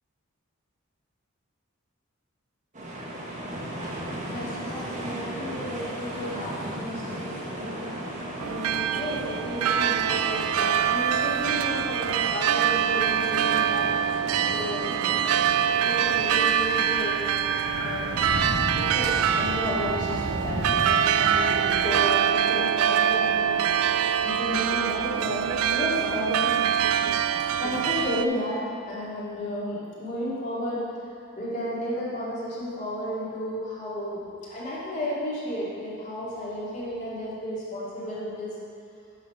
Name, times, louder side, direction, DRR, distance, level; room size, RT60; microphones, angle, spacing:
sound 1, 2.7-16.3, right 1 dB, 35° right, 1.3 m, -36 dB
voice 1, 4.3-7.9 8.4-13.9 14.4-14.9 15.8-17.2 17.8-26.5 27.6-30.9 31.4-38.6, equal, 35° left, -9 dB, 2.4 m, -33 dB
sound 2, 8.4-28.3, right 8 dB, 85° right, 0.3 m, -24 dB
sound 3, 15.9-22.0, left 1 dB, 85° left, 1.5 m, -34 dB
11.5 x 4.2 x 5.7 m, 2.4 s
head